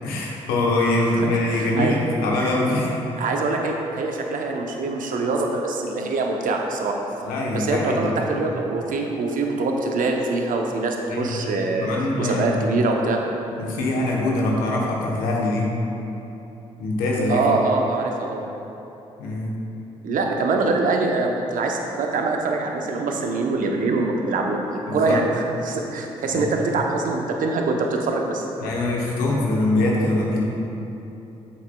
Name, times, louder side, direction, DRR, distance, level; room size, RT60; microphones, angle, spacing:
voice 1, 0.0-3.0 7.2-8.4 11.1-11.4 11.8-12.6 13.6-15.7 16.8-17.4 19.2-19.5 24.9-25.2 26.3-26.4 28.6-30.4, left 2 dB, 80° left, -2 dB, 1.0 m, -23 dB
voice 2, 1.5-2.0 2.4-2.5 3.2-7.0 7.5-11.9 12.2-13.2 17.3-18.4 20.0-24.6 24.9-25.3 25.6-28.4, right 3 dB, 65° right, 1 dB, 0.8 m, -24 dB
8.4 x 7.3 x 2.3 m, 3.0 s
hypercardioid pair, 45°, 15 cm